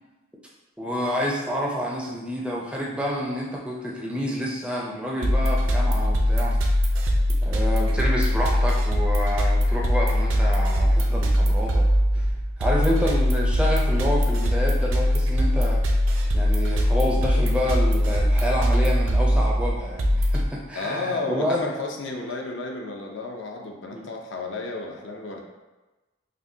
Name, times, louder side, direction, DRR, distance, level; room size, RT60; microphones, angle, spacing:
voice 1, 0.8-6.6 7.4-11.8 12.1-12.3 12.6-15.8 16.3-21.6 23.9-24.0, equal, 5° right, -3 dB, 0.4 m, -28 dB
sound 1, 5.2-20.4, equal, 80° right, 0.5 m, -21 dB
voice 2, 20.7-25.4, left 3 dB, 65° left, 1 dB, 0.5 m, -32 dB
5.0 x 2.1 x 2.7 m, 1.2 s
head